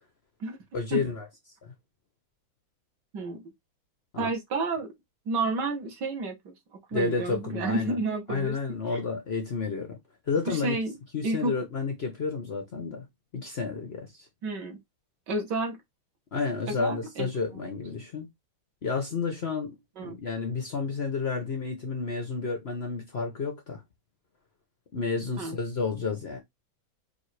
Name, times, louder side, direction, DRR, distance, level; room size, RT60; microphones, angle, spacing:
voice 1, 0.7-1.3 1.6-1.7 4.1-4.3 6.9-8.0 8.3-10.0 10.3-10.8 11.1-13.1 13.3-14.3 16.3-18.3 18.8-23.8 24.9-26.4, left 4 dB, 65° left, 0.6 m, -31 dB
voice 2, 3.1-3.4 4.2-4.9 5.3-6.5 6.9-8.5 8.9-9.0 10.5-10.9 11.2-11.5 14.4-14.8 15.3-15.8 16.7-17.7 20.0-20.2 25.4-25.6, right 3 dB, 55° right, 1.7 m, -31 dB
5.4 x 2.6 x 3.2 m
omnidirectional pair, 2.4 m